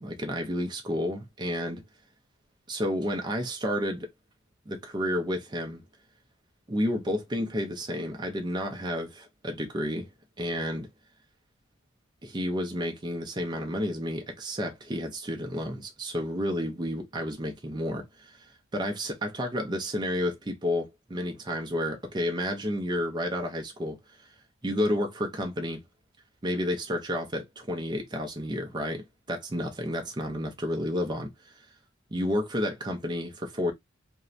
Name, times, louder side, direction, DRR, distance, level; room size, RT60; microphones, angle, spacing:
voice 1, 0.0-1.8 2.7-4.1 4.7-5.8 6.7-10.1 10.4-10.9 12.2-24.0 24.6-25.8 26.4-29.0 29.3-31.5 32.1-33.7, equal, 20° right, 0.5 m, -31 dB
2.7 x 2.1 x 2.3 m
head